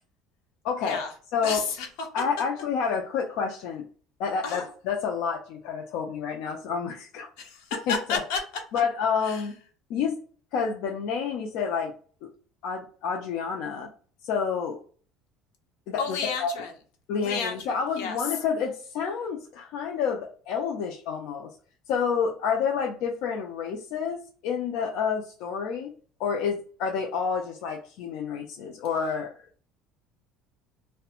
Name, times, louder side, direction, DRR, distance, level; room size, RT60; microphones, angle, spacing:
voice 1, 0.6-1.0 1.3-1.6 2.1-3.9 4.2-7.3 7.9-8.0 8.7-9.5 9.9-10.2 10.5-11.9 12.2-12.3 12.6-13.9 14.2-14.8 15.9-16.5 17.1-21.5 21.9-25.9 26.2-29.3, left 6 dB, 60° left, 1 dB, 0.4 m, -29 dB
voice 2, 1.4-2.1 4.4-4.6 7.4-8.4 9.2-9.4 16.0-16.7 17.2-18.3, left 5 dB, 90° left, 2 dB, 0.7 m, -31 dB
2.3 x 2.1 x 2.8 m, 0.42 s
cardioid pair, 175°, 0 cm